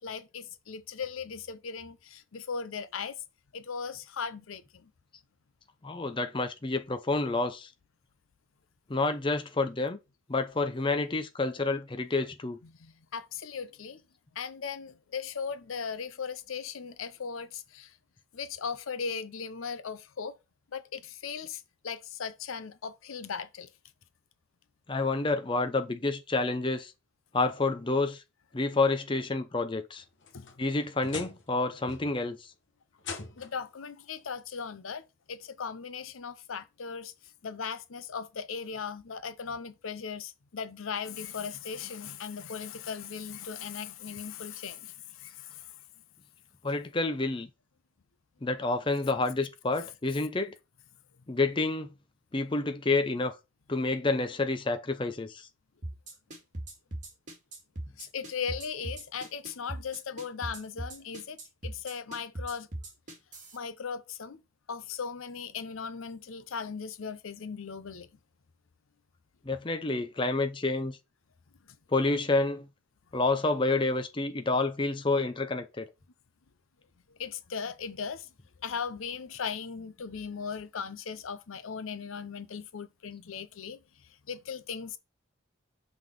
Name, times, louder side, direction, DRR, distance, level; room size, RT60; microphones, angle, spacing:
voice 1, 0.0-3.2 3.5-4.9 12.6-14.0 14.3-17.9 18.3-20.4 20.7-23.7 30.3-30.5 33.4-37.1 37.4-45.7 49.8-49.9 58.0-62.7 63.5-64.4 64.7-68.1 77.2-78.3 78.6-83.8 84.3-85.0, left 6 dB, 90° left, 0.6 m, -38 dB
voice 2, 5.8-7.7 8.9-10.0 10.3-12.6 24.9-26.9 27.3-28.2 28.5-30.0 30.6-32.4 46.6-47.5 48.4-50.5 51.3-51.9 52.3-53.3 53.7-55.4 69.5-71.0 71.9-72.7 73.1-75.9, left 3 dB, 25° left, 0.6 m, -29 dB
sound 1, 30.0-31.6 31.9-32.3 33.0-33.7 34.9-35.0 35.6-35.7 37.3-37.4, left 4 dB, 65° left, 1.0 m, -43 dB
sound 2, 55.8-63.6, right 1 dB, 40° right, 1.9 m, -39 dB
5.8 x 3.6 x 4.8 m
head